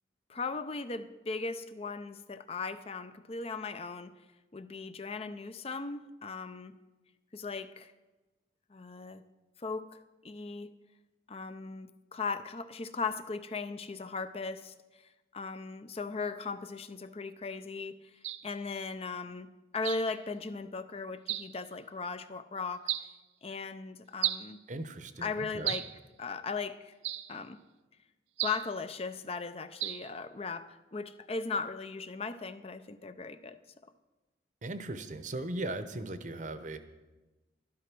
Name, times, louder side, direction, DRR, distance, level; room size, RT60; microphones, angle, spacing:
voice 1, 0.3-4.1 4.5-6.7 7.3-7.9 8.7-9.2 9.6-10.0 10.2-10.7 11.3-14.7 15.3-18.1 18.4-22.9 23.4-24.6 25.2-25.9 26.2-26.9 27.3-27.6 28.4-33.6, left 4 dB, 30° left, 11 dB, 0.5 m, -38 dB
sound 1, 18.2-18.5 19.8-20.1 21.3-21.6 22.9-23.1 24.2-24.5 25.7-26.0 27.0-27.4 28.4-28.7 29.8-30.1, right 14 dB, 85° right, 0.5 m, -34 dB
voice 2, 24.7-25.8 34.6-36.8, right 2 dB, 40° right, 11 dB, 0.8 m, -38 dB
12.5 x 11.5 x 6.1 m, 1.1 s
head